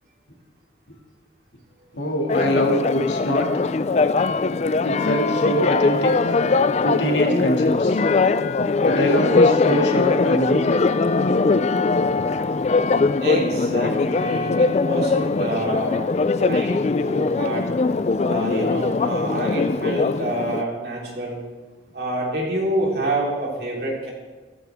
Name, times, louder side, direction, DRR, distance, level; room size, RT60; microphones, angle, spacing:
voice 1, 1.9-3.5 4.8-6.4 6.8-8.0 8.8-10.8, equal, 80° left, 1 dB, 2.3 m, -23 dB
Church bell, 2.3-20.6, left 3 dB, 35° left, 0.3 m, -21 dB
voice 2, 13.2-16.0 16.4-17.7 18.2-21.4 21.9-24.1, right 1 dB, 60° right, -3 dB, 3.6 m, -27 dB
15.0 x 13.5 x 3.5 m, 1.3 s
head